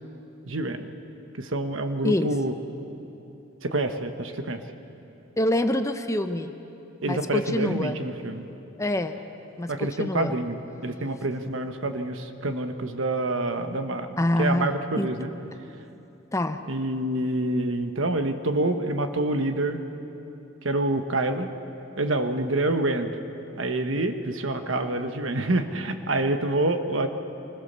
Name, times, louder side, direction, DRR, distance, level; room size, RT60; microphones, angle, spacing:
voice 1, 0.5-0.9 1.4-2.5 3.6-4.6 7.0-8.5 9.7-14.1 14.4-15.3 16.7-19.9 20.6-21.5 22.0-23.1 23.6-27.1, right 2 dB, 75° right, 7 dB, 1.2 m, -27 dB
voice 2, 5.4-6.5 7.1-8.0 8.8-9.2 9.6-10.3 14.2-15.1 16.3-16.6, left 1 dB, 15° left, 8 dB, 0.8 m, -26 dB
25.5 x 20.5 x 6.8 m, 2.9 s
head